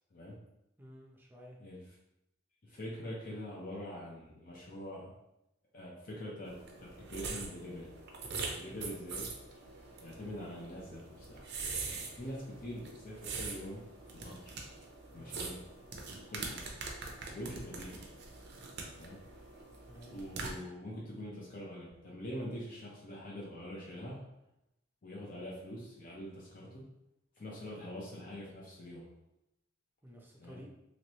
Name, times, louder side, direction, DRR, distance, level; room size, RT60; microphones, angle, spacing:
voice 1, 0.8-1.6 8.7-8.9 15.2-15.3 19.9-20.1 30.0-30.7, equal, 10° right, -1 dB, 0.5 m, -53 dB
voice 2, 2.6-5.1 5.7-7.9 8.5-9.3 10.0-11.4 11.8-13.8 14.1-14.6 15.1-15.6 16.3-16.7 17.3-18.0 18.9-19.2 20.0-24.2 25.0-26.8 27.4-29.1 30.4-30.6, equal, 45° left, -4 dB, 0.6 m, -44 dB
sound 1, 6.5-20.5, right 4 dB, 60° right, 0.6 m, -43 dB
3.1 x 3.0 x 2.9 m, 0.88 s
head